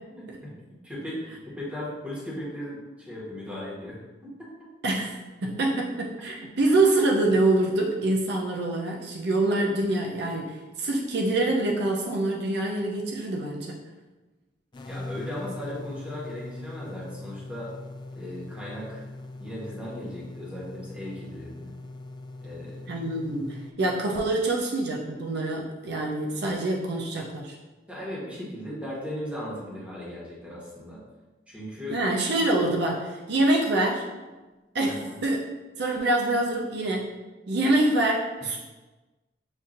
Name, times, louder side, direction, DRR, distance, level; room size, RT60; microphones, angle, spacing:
voice 1, 0.1-1.2 1.6-4.0 4.2-4.5 14.8-17.7 18.1-19.0 19.4-21.7 22.4-22.8 27.9-31.0 31.5-32.0 34.8-35.1 38.4-38.5, left 1 dB, 5° right, -7 dB, 1.2 m, -37 dB
voice 2, 4.8-13.8 22.9-27.5 31.9-34.1 34.7-35.4 35.8-37.2 37.5-38.6, right 2 dB, 65° right, -1 dB, 0.5 m, -25 dB
sound 1, 14.7-23.7, left 2 dB, 25° left, 0.3 m, -41 dB
7.0 x 2.6 x 2.5 m, 1.2 s
head